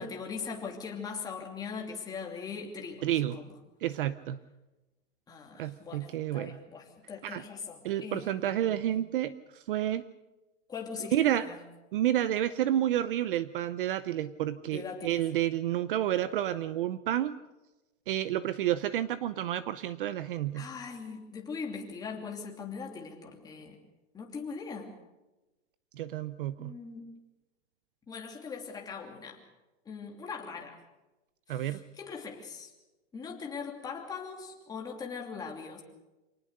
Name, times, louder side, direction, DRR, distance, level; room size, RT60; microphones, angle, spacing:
voice 1, 0.0-3.4 5.3-8.9 10.7-11.6 14.7-15.2 20.5-23.8 24.1-25.0 26.6-27.1 28.1-29.4 29.8-30.8 31.5-32.7 33.1-35.8, left 5 dB, 10° left, 0 dB, 2.8 m, -41 dB
voice 2, 3.0-3.4 3.8-4.4 5.6-6.6 7.2-7.4 7.8-10.0 11.1-11.5 11.9-17.4 18.1-20.7 26.0-26.7 31.5-31.8, right 12 dB, 45° right, 15 dB, 0.7 m, -30 dB
27.0 x 19.0 x 6.7 m, 1.1 s
supercardioid pair, 170°, 37 cm